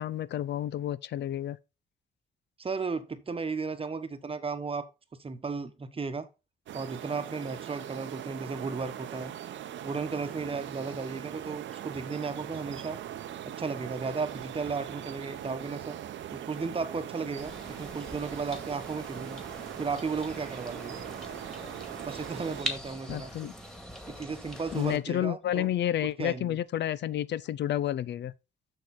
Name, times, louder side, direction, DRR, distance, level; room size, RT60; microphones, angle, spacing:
voice 1, 0.0-1.6 23.1-23.5 24.7-28.3, left 11 dB, 65° left, 0.5 m, -30 dB
voice 2, 2.6-4.9 5.2-6.3 6.7-9.3 9.8-13.0 13.4-16.0 16.3-19.4 19.8-21.4 21.9-23.5 24.1-25.7 26.0-26.6, right 4 dB, 30° right, 1.1 m, -35 dB
sound 1, 6.7-22.6, right 11 dB, 70° right, 0.8 m, -41 dB
sound 2, 17.4-25.0, equal, 5° left, 2.0 m, -42 dB
6.5 x 6.5 x 4.1 m
cardioid pair, 90°, 20 cm